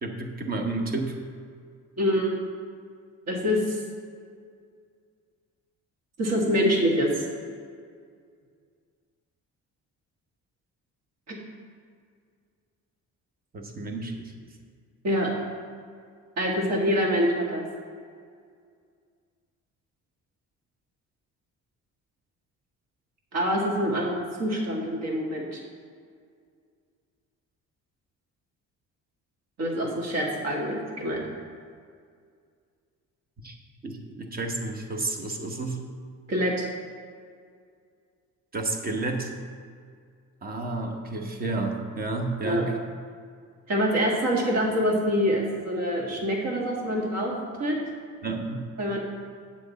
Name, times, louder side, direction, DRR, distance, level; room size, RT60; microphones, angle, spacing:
voice 1, 0.0-1.1 13.5-14.1 33.4-33.5 33.8-35.8 38.5-39.3 40.4-42.7 48.2-48.6, right 2 dB, 30° right, 3 dB, 1.0 m, -31 dB
voice 2, 2.0-2.3 3.3-3.8 6.2-7.3 11.3-11.4 15.0-15.3 16.4-17.6 23.3-25.6 29.6-31.2 36.3-36.6 42.4-42.6 43.7-47.3 47.6-47.8 48.8-49.0, equal, 55° right, -2 dB, 1.9 m, -25 dB
9.3 x 7.2 x 4.1 m, 2.1 s
cardioid pair, 160°, 32 cm